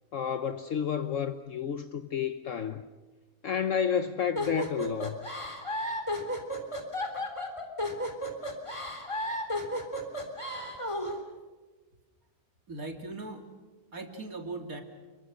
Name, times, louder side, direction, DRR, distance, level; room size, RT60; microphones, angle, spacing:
voice 1, 0.1-2.8 3.4-5.2, left 8 dB, 60° left, 1.2 m, -30 dB
sound 1, 4.4-11.2, left 1 dB, 20° left, 3.5 m, -33 dB
voice 2, 12.7-13.4 13.9-14.8, right 3 dB, 70° right, 3.3 m, -39 dB
29.0 x 23.0 x 6.4 m
omnidirectional pair, 1.6 m